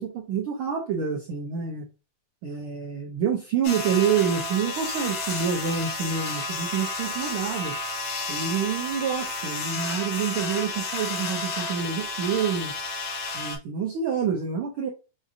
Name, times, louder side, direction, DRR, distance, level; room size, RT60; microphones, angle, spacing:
voice 1, 0.0-1.9 2.4-7.7 8.3-12.7 13.3-14.9, right 7 dB, 85° right, 0 dB, 1.2 m, -27 dB
sound 1, 3.6-13.6, left 2 dB, 85° left, 2.8 m, -31 dB
6.4 x 2.6 x 2.5 m, 0.29 s
omnidirectional pair, 3.3 m